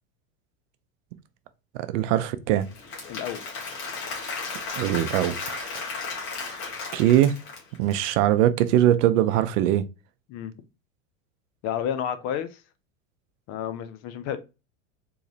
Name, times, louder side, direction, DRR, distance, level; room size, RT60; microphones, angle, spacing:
voice 1, 1.9-2.7 4.8-5.6 6.9-7.3 7.8-9.9, right 12 dB, 70° right, 0.6 m, -21 dB
Applause / Crowd, 2.6-7.9, left 4 dB, 70° left, 1.8 m, -34 dB
voice 2, 3.1-3.4 10.3-10.5 11.6-12.6 13.5-14.4, left 9 dB, 40° left, 0.6 m, -30 dB
3.9 x 2.9 x 2.7 m
supercardioid pair, 125°, 40 cm